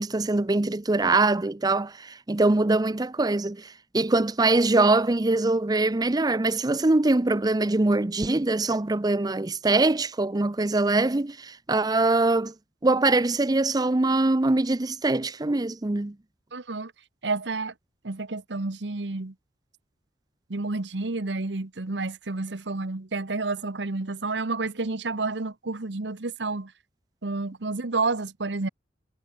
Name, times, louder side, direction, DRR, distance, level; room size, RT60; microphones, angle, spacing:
voice 1, 0.0-12.5 12.8-16.1, right 2 dB, 20° right, 0.6 m, -23 dB
voice 2, 16.5-16.9 17.2-17.7 18.0-19.3 20.5-26.7 27.2-28.7, right 3 dB, 80° right, 1.2 m, -30 dB
head